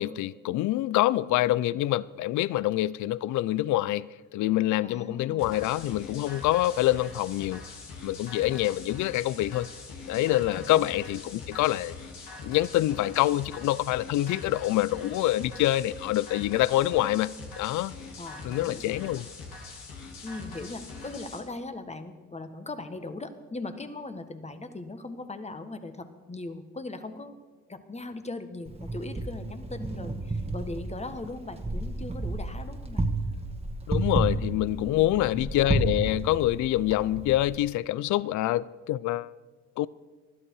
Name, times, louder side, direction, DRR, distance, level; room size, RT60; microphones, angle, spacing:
voice 1, 0.0-7.6 8.0-9.7 10.1-12.0 12.4-17.9 18.4-19.3 33.9-39.3 39.8-39.9, left 15 dB, 60° left, 0.5 m, -26 dB
voice 2, 4.8-5.6 10.5-10.9 18.2-18.8 20.2-27.4 27.7-33.0, left 2 dB, 20° left, 1.6 m, -39 dB
sound 1, 5.4-21.4, left 3 dB, 80° left, 3.2 m, -43 dB
Wind, 28.6-37.6, right 2 dB, 20° right, 1.9 m, -32 dB
20.0 x 12.5 x 4.8 m
supercardioid pair, 70°, 33 cm